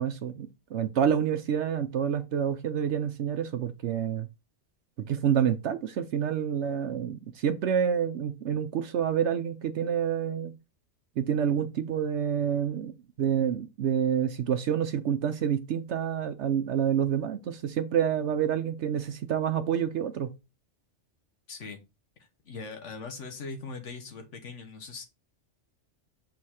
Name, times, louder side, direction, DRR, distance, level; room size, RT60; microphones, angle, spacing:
voice 1, 0.0-4.3 5.0-10.6 11.2-20.3, right 8 dB, 70° right, 0.9 m, -28 dB
voice 2, 21.5-21.8 22.2-25.0, left 4 dB, 80° left, 1.3 m, -41 dB
6.5 x 3.9 x 4.3 m
omnidirectional pair, 1.2 m